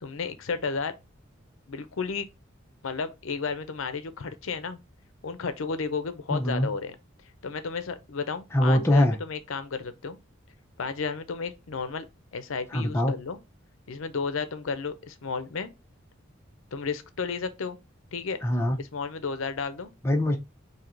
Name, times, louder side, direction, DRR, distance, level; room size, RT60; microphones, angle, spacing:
voice 1, 0.0-0.9 1.7-2.3 2.8-4.8 5.2-7.0 7.4-10.2 10.8-12.1 12.3-13.4 13.9-15.7 16.7-17.8 18.1-18.4 18.8-19.9, left 5 dB, 70° left, 0.6 m, -32 dB
voice 2, 6.3-6.7 8.5-9.1 12.7-13.1 18.4-18.8 20.0-20.4, left 1 dB, 10° left, 0.6 m, -22 dB
4.6 x 2.8 x 3.8 m
head